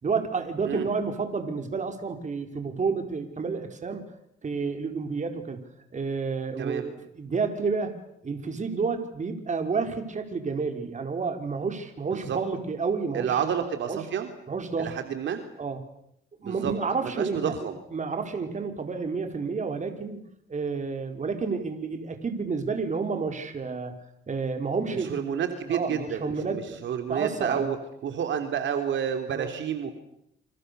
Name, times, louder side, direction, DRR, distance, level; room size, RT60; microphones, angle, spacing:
voice 1, 0.0-4.0 4.4-8.0 8.2-13.4 13.9-14.0 14.5-14.9 15.6-15.8 16.4-17.4 17.9-20.2 20.5-23.9 24.3-25.1 25.7-26.8 27.1-27.7 29.3-29.5, right 4 dB, 40° right, 6 dB, 4.6 m, -30 dB
voice 2, 13.1-14.3 14.8-15.4 16.4-16.7 17.0-17.8 24.9-27.8 28.0-29.9, right 8 dB, 70° right, 7 dB, 3.3 m, -30 dB
28.5 x 27.0 x 6.9 m, 0.77 s
cardioid pair, 90°, 20 cm